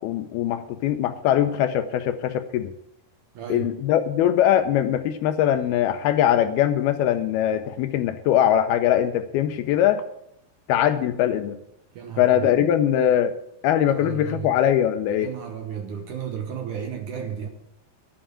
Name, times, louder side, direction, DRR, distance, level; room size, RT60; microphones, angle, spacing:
voice 1, 0.0-2.7 3.5-10.0 10.7-11.6 12.2-13.3 13.6-15.3, left 10 dB, 80° left, 2.4 m, -21 dB
voice 2, 3.4-3.7 12.0-12.7 13.9-14.5 15.2-17.5, right 8 dB, 70° right, 2.1 m, -33 dB
11.0 x 7.6 x 8.8 m
omnidirectional pair, 4.8 m